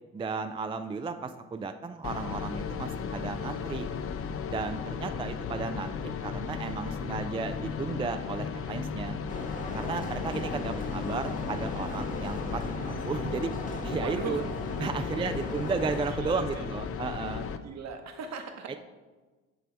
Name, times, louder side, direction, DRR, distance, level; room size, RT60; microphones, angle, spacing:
voice 1, 0.1-3.9 4.5-9.2 9.7-14.4 14.8-17.5 18.7-18.8, right 4 dB, 15° right, 8 dB, 0.3 m, -34 dB
Heavens Reprise, 2.0-17.6, left 6 dB, 45° left, 0.5 m, -35 dB
voice 2, 6.8-7.1 14.0-14.5 15.1-15.4 16.1-16.7 17.6-18.8, right 5 dB, 50° right, 5 dB, 1.0 m, -38 dB
sound 1, 9.3-16.1, left 1 dB, 25° left, 1.0 m, -38 dB
8.4 x 3.3 x 4.5 m, 1.3 s
hypercardioid pair, 60°, 33 cm